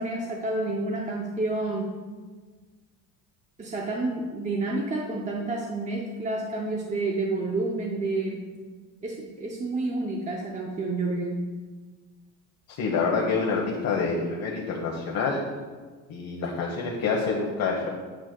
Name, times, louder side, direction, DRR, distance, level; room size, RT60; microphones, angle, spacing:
voice 1, 0.0-1.9 3.6-8.4 9.0-11.4, right 2 dB, 15° right, -1 dB, 0.5 m, -29 dB
voice 2, 12.8-15.4 16.1-17.9, left 4 dB, 50° left, -2 dB, 1.1 m, -27 dB
9.3 x 7.2 x 2.2 m, 1.4 s
cardioid pair, 135°, 47 cm